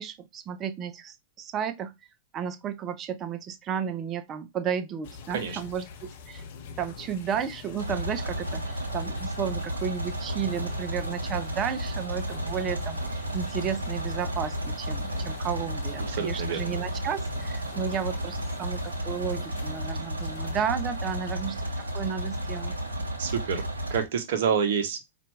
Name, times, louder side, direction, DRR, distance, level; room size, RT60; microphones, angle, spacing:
voice 1, 0.0-1.9 2.3-6.4 6.8-22.8, right 8 dB, 30° right, 0.6 m, -33 dB
sound 1, 5.0-23.0, left 6 dB, 55° left, 0.7 m, -45 dB
sound 2, 7.8-24.0, right 1 dB, 85° right, 0.8 m, -33 dB
voice 2, 16.1-16.7 23.2-25.0, right 7 dB, 65° right, 0.9 m, -28 dB
4.3 x 2.6 x 3.1 m
hypercardioid pair, 105°, 0 cm